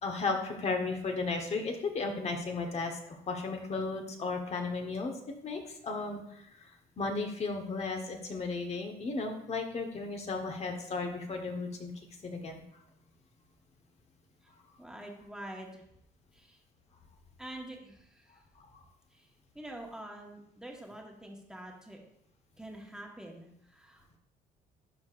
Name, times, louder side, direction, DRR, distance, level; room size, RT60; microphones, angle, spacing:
voice 1, 0.0-5.1 5.4-6.7 7.0-11.9 12.2-12.6 18.7-18.8, left 3 dB, 40° left, 3 dB, 1.3 m, -35 dB
voice 2, 14.8-15.8 16.3-16.6 17.4-18.4 19.1-19.3 19.5-22.0 22.6-24.2, right 1 dB, 5° right, 0 dB, 1.5 m, -46 dB
11.5 x 4.7 x 2.6 m, 0.75 s
cardioid pair, 110°, 17 cm